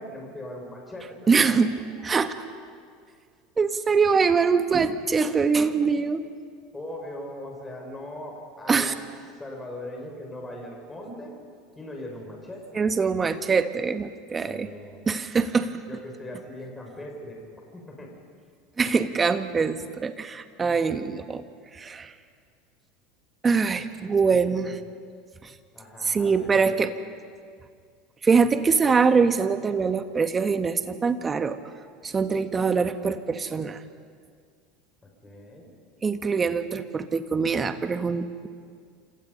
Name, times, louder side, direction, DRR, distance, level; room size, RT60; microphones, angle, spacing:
voice 1, 0.0-1.6 6.7-8.9 9.3-11.3 11.8-12.6 14.4-15.0 15.9-17.4 17.7-18.1 24.2-24.7 25.7-26.8 35.0-35.7, left 1 dB, 15° left, 0 dB, 6.0 m, -40 dB
voice 2, 1.3-1.7 2.0-2.3 3.6-6.2 8.7-8.9 12.7-14.7 15.1-15.7 18.8-21.4 21.7-22.1 23.4-24.7 25.4-25.5 26.0-26.9 28.2-31.6 32.0-33.8 36.0-38.5, right 5 dB, 25° right, 9 dB, 1.6 m, -23 dB
28.5 x 27.0 x 5.5 m, 2.1 s
figure-of-eight pair, 75°, 0 cm